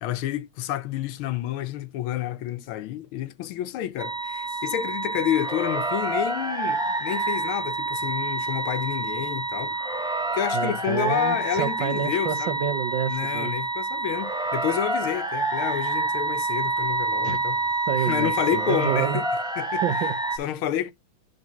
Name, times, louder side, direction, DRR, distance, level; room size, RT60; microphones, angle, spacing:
voice 1, 0.0-9.7 10.3-12.6 13.1-17.6 18.0-19.3 19.6-19.8 20.4-20.9, left 11 dB, 80° left, 1.6 m, -29 dB
sound 1, 4.0-20.4, right 2 dB, 5° right, 0.7 m, -28 dB
voice 2, 10.5-13.5 17.2-17.4 17.9-19.2 19.8-20.5, right 9 dB, 65° right, 1.5 m, -29 dB
10.5 x 5.1 x 2.9 m
omnidirectional pair, 2.3 m